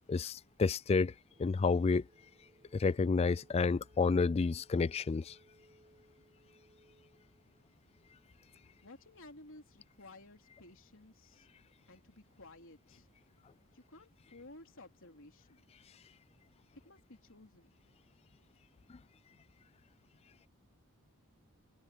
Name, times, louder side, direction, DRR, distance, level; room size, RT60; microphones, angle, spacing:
voice 1, 0.1-1.1 1.4-2.0 2.7-5.4 18.9-19.0, left 4 dB, 25° left, 0.3 m, -30 dB
sound 1, 1.3-12.3, right 1 dB, 25° right, 4.7 m, -68 dB
voice 2, 8.8-11.5 11.9-13.1 13.7-15.6 16.8-17.8, left 2 dB, 60° left, 3.8 m, -56 dB
head